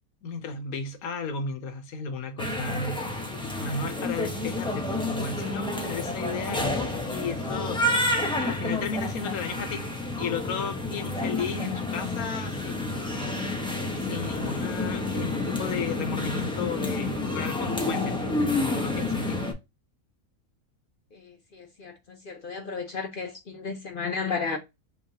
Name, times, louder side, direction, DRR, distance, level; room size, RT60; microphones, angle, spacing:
voice 1, 0.2-3.1 3.6-7.8 8.4-9.8 10.2-13.2 14.0-19.5, left 4 dB, 75° left, 1.3 m, -34 dB
sound 1, 2.4-19.5, left 2 dB, 5° left, 0.4 m, -29 dB
voice 2, 21.1-24.6, left 5 dB, 50° left, 0.6 m, -33 dB
3.8 x 3.3 x 2.8 m
omnidirectional pair, 1.5 m